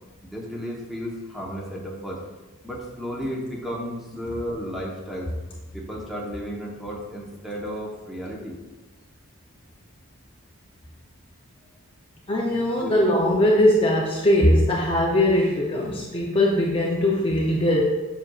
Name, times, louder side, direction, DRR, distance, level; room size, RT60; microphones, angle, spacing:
voice 1, 0.2-2.2 2.6-5.3 5.7-8.6 12.8-12.9, equal, ahead, -3 dB, 0.9 m, -33 dB
voice 2, 12.3-17.8, left 1 dB, 25° left, -3 dB, 0.6 m, -20 dB
7.4 x 6.1 x 2.4 m, 1.2 s
head